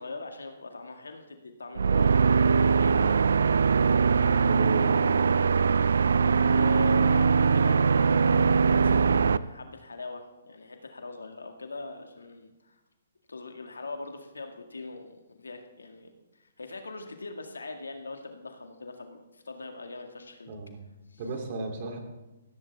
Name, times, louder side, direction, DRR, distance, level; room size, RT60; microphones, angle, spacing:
voice 1, 0.0-2.4 2.7-3.2 3.7-4.0 6.4-12.8 13.3-20.5 21.1-21.2, left 3 dB, 85° left, 5 dB, 2.0 m, -41 dB
sound 1, 1.8-9.4, right 5 dB, 75° right, 0.4 m, -22 dB
voice 2, 3.9-5.1 20.5-20.8 21.2-22.0, right 3 dB, 45° right, 3 dB, 3.1 m, -36 dB
17.0 x 15.5 x 3.5 m, 1.0 s
hypercardioid pair, 135°, 0 cm